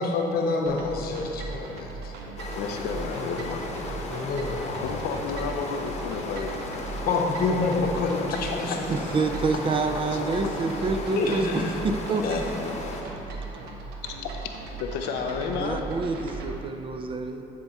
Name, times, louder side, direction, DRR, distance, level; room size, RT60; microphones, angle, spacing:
voice 1, 0.0-2.1 3.2-3.3 3.8-4.9 7.1-9.1 9.5-9.6 10.5-10.8 11.1-11.7 12.2-12.4, left 3 dB, 60° left, 1 dB, 0.9 m, -28 dB
sound 1, 0.7-16.5, right 3 dB, 80° right, 0.8 m, -38 dB
sound 2, 2.4-13.0, left 2 dB, 40° left, 0.9 m, -36 dB
voice 2, 2.6-3.6 4.8-6.7 10.1-10.2 14.2-14.3 14.8-15.8, left 5 dB, 85° left, 4 dB, 0.5 m, -31 dB
voice 3, 8.9-12.4 15.5-17.4, right 4 dB, 30° right, 6 dB, 0.4 m, -28 dB
9.9 x 3.5 x 4.1 m, 2.9 s
cardioid pair, 110°, 17 cm